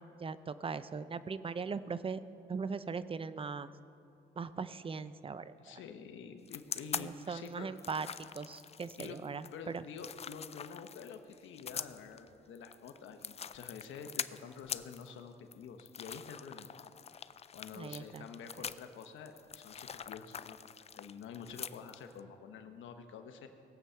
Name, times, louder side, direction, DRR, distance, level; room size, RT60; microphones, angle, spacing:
voice 1, 0.0-2.2 2.5-3.7 4.4-5.5 6.9-8.1 8.4-9.8 17.7-18.3, right 5 dB, 25° right, 14 dB, 0.6 m, -39 dB
voice 2, 5.6-7.7 9.0-9.2 9.5-16.7 17.5-20.6 21.0-23.5, left 6 dB, 75° left, 6 dB, 1.1 m, -48 dB
sound 1, 6.4-22.2, left 7 dB, 30° left, 0.4 m, -44 dB
20.5 x 8.0 x 5.7 m, 2.6 s
cardioid pair, 90°, 20 cm